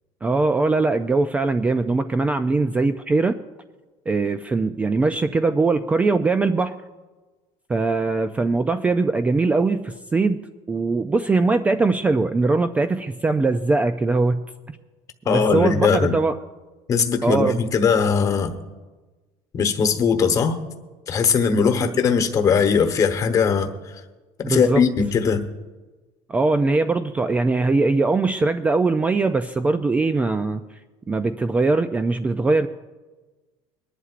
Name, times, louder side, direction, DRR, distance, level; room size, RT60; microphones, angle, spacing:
voice 1, 0.2-3.4 4.1-6.7 7.7-14.8 15.3-16.4 17.2-17.6 21.7-21.9 24.4-24.8 26.3-30.6 31.1-32.7, right 3 dB, 15° right, 10 dB, 0.3 m, -21 dB
voice 2, 15.3-16.1 16.9-18.5 19.5-20.6 21.1-23.7 24.5-25.4, left 6 dB, 30° left, 7 dB, 1.1 m, -20 dB
24.0 x 11.0 x 2.5 m, 1.2 s
cardioid pair, 150°, 11 cm